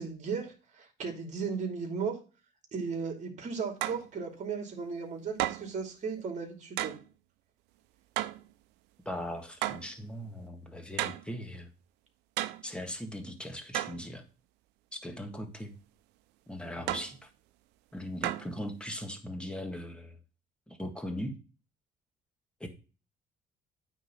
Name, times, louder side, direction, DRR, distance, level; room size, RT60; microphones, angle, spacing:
voice 1, 0.0-2.2 2.7-6.9, right 5 dB, 45° right, 3 dB, 3.0 m, -36 dB
sound 1, 3.8-4.1 5.4-5.8 6.8-7.0 8.2-8.5 9.6-9.9 11.0-11.3 12.4-12.7 13.7-14.0 16.9-17.2 18.2-18.6, right 15 dB, 90° right, 0.6 m, -33 dB
voice 2, 9.0-11.7 12.6-14.2 14.9-15.7 16.5-17.3 17.9-20.2 20.7-21.4 22.6-22.7, equal, 5° left, 5 dB, 1.7 m, -39 dB
9.3 x 3.8 x 5.7 m, 0.34 s
cardioid pair, 110°, 17 cm